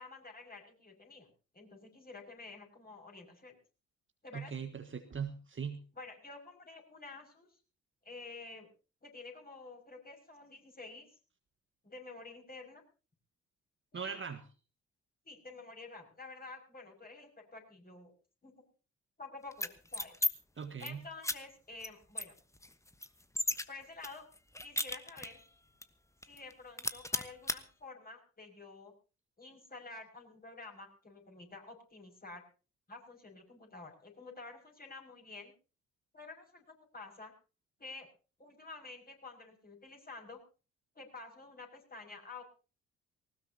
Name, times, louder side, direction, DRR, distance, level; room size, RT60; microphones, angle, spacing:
voice 1, 0.0-3.6 4.2-4.5 5.9-7.6 8.0-8.7 9.0-11.1 11.8-12.8 13.9-14.2 15.2-18.1 18.4-18.7 19.2-20.1 20.8-22.3 23.7-24.3 24.6-25.4 26.3-28.9 29.4-32.4 32.9-35.5 36.1-37.3 37.8-38.1 38.4-40.4 40.9-42.4, left 3 dB, 25° left, 1 dB, 6.2 m, -50 dB
voice 2, 4.3-5.8 13.9-14.4 20.6-21.0, right 6 dB, 30° right, 7 dB, 1.5 m, -40 dB
sound 1, 19.5-20.3 20.6-20.9 21.2-21.4 21.8-21.9 22.2-23.6 24.0-25.4 25.8-25.9 26.2-26.5 26.8-27.6, left 1 dB, 10° left, 1.3 m, -35 dB
20.0 x 19.0 x 2.9 m, 0.36 s
figure-of-eight pair, 45°, 38 cm